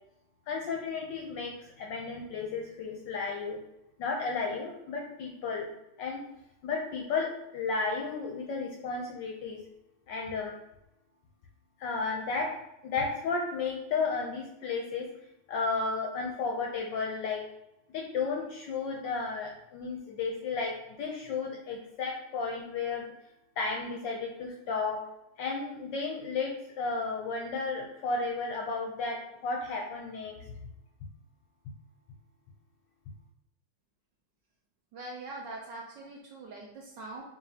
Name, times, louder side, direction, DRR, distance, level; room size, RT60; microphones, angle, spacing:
voice 1, 0.5-3.6 4.0-5.7 6.0-6.2 6.6-9.6 10.1-10.5 11.8-12.5 12.8-15.1 15.5-17.4 17.9-23.1 23.6-25.0 25.4-26.5 26.8-30.4, left 4 dB, 70° left, 0 dB, 1.1 m, -33 dB
voice 2, 34.9-37.2, right 2 dB, 75° right, -2 dB, 1.1 m, -42 dB
4.9 x 2.7 x 2.7 m, 0.85 s
omnidirectional pair, 2.4 m